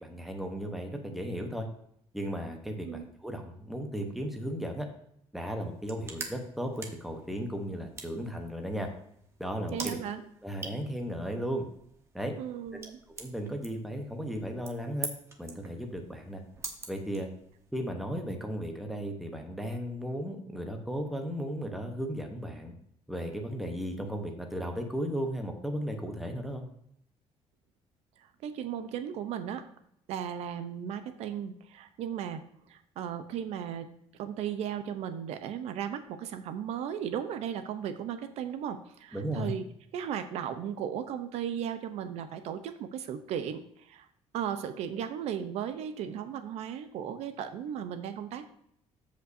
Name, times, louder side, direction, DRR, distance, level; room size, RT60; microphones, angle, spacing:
voice 1, 0.0-1.7 2.1-4.9 5.3-8.9 9.4-10.0 10.4-11.7 12.1-12.3 13.2-15.1 15.4-16.4 16.9-17.3 17.7-22.7 23.1-26.6 39.1-39.5, equal, ahead, 3 dB, 0.9 m, -35 dB
sound 1, 5.6-17.7, right 4 dB, 25° right, 1.0 m, -45 dB
voice 2, 9.7-10.2 12.4-13.0 28.2-29.6 30.1-39.6 39.9-44.1 44.3-48.4, right 9 dB, 70° right, 9 dB, 0.7 m, -36 dB
14.5 x 5.2 x 2.7 m, 0.72 s
cardioid pair, 170°, 11 cm